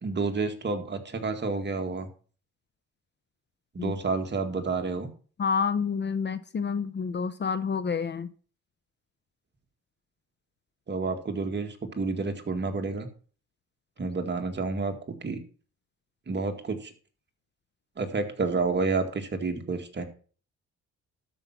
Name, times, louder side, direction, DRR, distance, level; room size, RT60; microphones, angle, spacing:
voice 1, 0.0-2.1 3.7-5.1 10.9-13.1 14.0-15.4 16.3-16.9 18.0-20.0, right 4 dB, 35° right, 5 dB, 2.1 m, -30 dB
voice 2, 5.4-8.3, left 6 dB, 35° left, 13 dB, 0.8 m, -28 dB
12.5 x 5.6 x 6.1 m, 0.41 s
cardioid pair, 90°, 30 cm